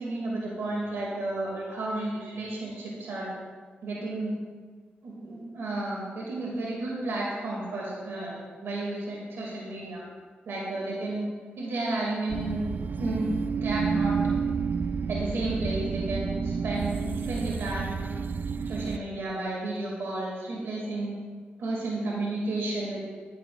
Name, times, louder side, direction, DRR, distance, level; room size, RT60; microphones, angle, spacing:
voice 1, 0.0-3.3 3.8-4.4 5.0-8.3 8.6-10.0 10.5-11.3 11.6-12.6 13.0-13.3 13.5-14.1 15.1-18.2 18.6-21.1 21.6-23.0, right 2 dB, 85° right, -4 dB, 2.7 m, -32 dB
sound 1, 12.3-19.0, right 5 dB, 55° right, 0.4 m, -30 dB
15.0 x 10.5 x 2.6 m, 1.5 s
cardioid pair, 75°, 4 cm